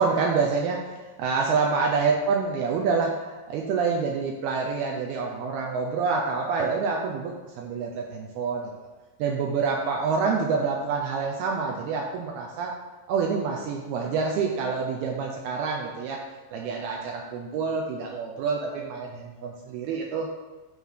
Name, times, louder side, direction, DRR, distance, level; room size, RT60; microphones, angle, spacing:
voice 1, 0.0-8.7 9.2-12.7 13.1-16.2 16.5-20.3, right 5 dB, 75° right, 0 dB, 2.5 m, -27 dB
9.3 x 3.7 x 6.4 m, 1.2 s
omnidirectional pair, 5.0 m